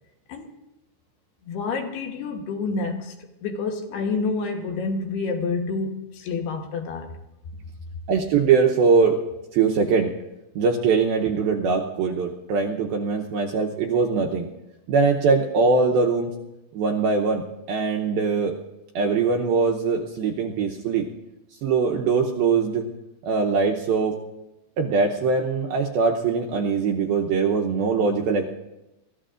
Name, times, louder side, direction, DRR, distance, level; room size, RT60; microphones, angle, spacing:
voice 1, 1.5-3.1 3.4-7.1, left 4 dB, 70° left, 3 dB, 2.9 m, -28 dB
voice 2, 8.1-9.2 9.5-10.1 10.6-14.5 14.9-16.3 16.7-17.4 17.7-18.5 19.0-21.1 21.6-22.9 23.2-24.2 24.8-28.4, right 5 dB, 75° right, 0 dB, 2.3 m, -22 dB
28.5 x 14.5 x 2.5 m, 0.95 s
omnidirectional pair, 5.2 m